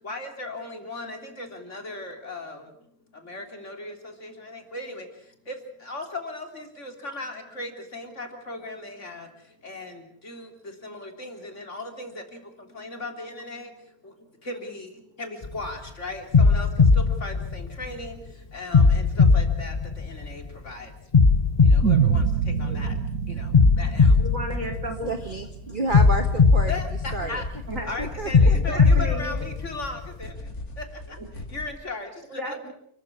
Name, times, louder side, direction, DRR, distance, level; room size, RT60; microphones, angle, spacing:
voice 1, 0.0-2.7 3.1-24.2 25.0-25.1 26.7-27.5 27.8-30.3 30.8-32.6, left 2 dB, 50° left, 4 dB, 3.8 m, -38 dB
sound 1, 15.4-15.7 16.3-18.1 18.7-20.5 21.1-22.9 23.5-25.3 25.9-27.7 28.3-30.1, left 4 dB, 30° left, 1.0 m, -19 dB
sound 2, 21.8-26.2, right 8 dB, 85° right, 1.7 m, -26 dB
voice 2, 24.2-25.1 27.7-27.9 28.4-29.4 31.2-31.3 32.4-32.7, equal, 60° right, 3 dB, 4.7 m, -34 dB
sound 3, 24.5-24.6 25.9-31.7, left 2 dB, 75° left, 3.9 m, -39 dB
voice 3, 25.1-26.7 27.1-27.4 28.0-28.8, right 2 dB, 35° right, 5 dB, 1.7 m, -31 dB
29.5 x 14.5 x 8.5 m, 0.68 s
omnidirectional pair, 1.5 m